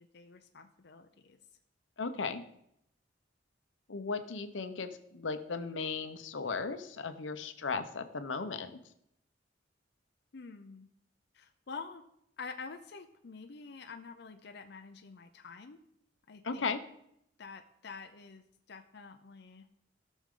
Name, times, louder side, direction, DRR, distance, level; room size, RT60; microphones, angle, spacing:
voice 1, 0.0-1.4 10.3-10.9 11.3-12.0 12.4-15.8 16.3-16.8 17.4-18.4 18.7-19.7, left 4 dB, 60° left, 5 dB, 0.6 m, -47 dB
voice 2, 2.0-2.4 3.9-8.8 16.4-16.8, left 4 dB, 85° left, 9 dB, 0.9 m, -36 dB
16.5 x 6.4 x 3.8 m, 0.76 s
head